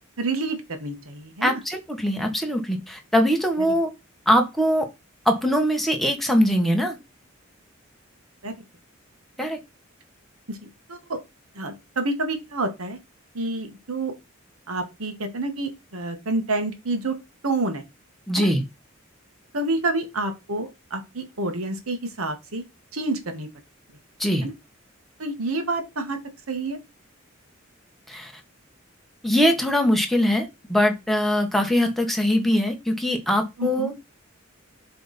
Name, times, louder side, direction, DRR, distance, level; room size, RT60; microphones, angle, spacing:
voice 1, 0.2-1.6 3.7-3.8 8.4-8.5 10.5-10.6 10.9-11.2 11.5-13.0 13.3-14.1 14.7-17.2 17.4-17.8 18.3-18.5 19.5-22.6 22.9-23.5 24.4-24.5 25.2-26.2 26.5-26.8 33.6-33.9, right 2 dB, 80° right, 1.4 m, -28 dB
voice 2, 1.4-3.9 4.3-4.9 5.2-7.0 9.4-9.6 18.3-18.6 24.2-24.5 28.1-28.3 29.2-33.9, equal, ahead, 1.1 m, -22 dB
7.4 x 3.4 x 4.1 m
head